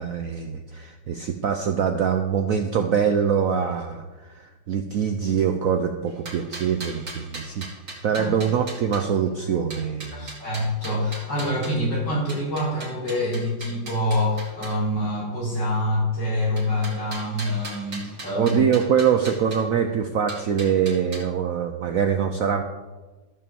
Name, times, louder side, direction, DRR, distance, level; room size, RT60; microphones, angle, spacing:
voice 1, 0.0-7.7 8.0-10.3 18.3-22.6, right 7 dB, 65° right, 6 dB, 0.8 m, -24 dB
sound 1, 6.1-9.0 9.7-11.8 12.3-14.8 16.6-19.6 20.3-21.2, right 2 dB, 50° right, 2.9 m, -39 dB
voice 2, 10.1-18.6, left 1 dB, 60° left, -5 dB, 4.5 m, -26 dB
13.0 x 5.7 x 7.0 m, 1.2 s
omnidirectional pair, 2.1 m